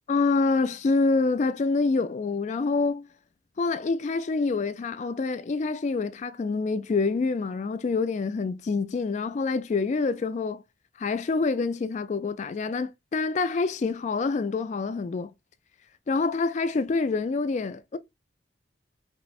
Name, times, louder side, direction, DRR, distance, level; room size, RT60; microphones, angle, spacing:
voice 1, 0.1-3.1 3.6-10.6 11.0-15.3 16.1-18.0, left 4 dB, 40° left, 0.3 m, -26 dB
4.4 x 2.0 x 2.3 m
head